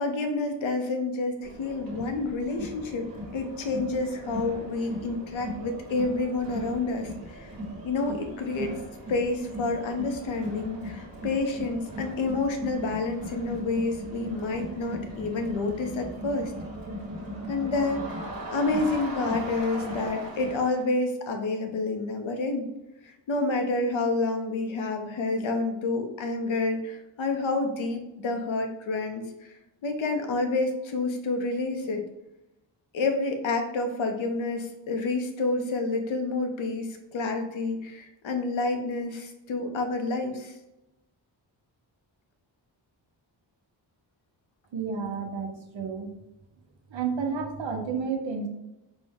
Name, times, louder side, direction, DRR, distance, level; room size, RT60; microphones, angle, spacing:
voice 1, 0.0-7.5 7.8-8.7 9.1-16.5 17.5-18.2 18.5-22.7 23.0-29.6 29.8-32.0 32.9-40.6, left 3 dB, 90° left, 4 dB, 0.7 m, -29 dB
Crowd, 1.4-20.8, equal, 50° right, 1.1 m, -38 dB
voice 2, 44.7-46.1 46.9-48.5, right 5 dB, 75° right, 4 dB, 0.8 m, -31 dB
4.3 x 2.1 x 3.4 m, 0.94 s
cardioid pair, 80°, 46 cm